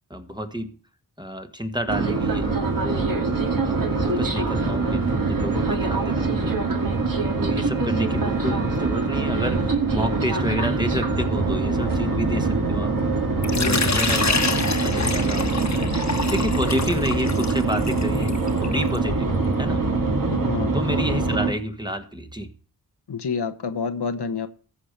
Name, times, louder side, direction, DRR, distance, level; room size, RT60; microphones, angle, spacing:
voice 1, 0.1-0.8 1.2-3.0 3.6-3.8 4.0-6.7 7.4-12.9 13.5-14.5 14.8-15.5 16.3-19.3 19.6-19.8 20.7-22.5, equal, 10° right, 6 dB, 1.6 m, -30 dB
sound 1, 1.9-21.5, right 3 dB, 50° right, 2.4 m, -24 dB
Water / Liquid, 13.4-19.0, left 4 dB, 40° left, 1.5 m, -27 dB
voice 2, 13.5-14.0 20.2-20.8 23.1-24.5, left 5 dB, 65° left, 8 dB, 1.2 m, -28 dB
14.5 x 5.0 x 6.7 m, 0.39 s
cardioid pair, 45°, 44 cm